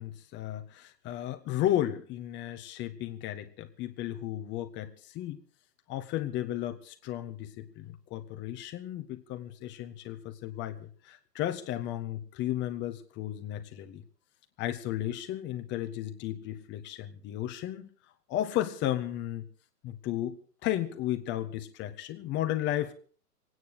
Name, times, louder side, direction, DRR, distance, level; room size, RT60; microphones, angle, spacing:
voice 1, 0.0-5.4 5.9-14.0 14.6-17.8 18.3-19.4 19.8-22.9, left 12 dB, 20° left, 7 dB, 1.6 m, -34 dB
26.0 x 9.6 x 4.9 m, 0.43 s
figure-of-eight pair, 125°, 49 cm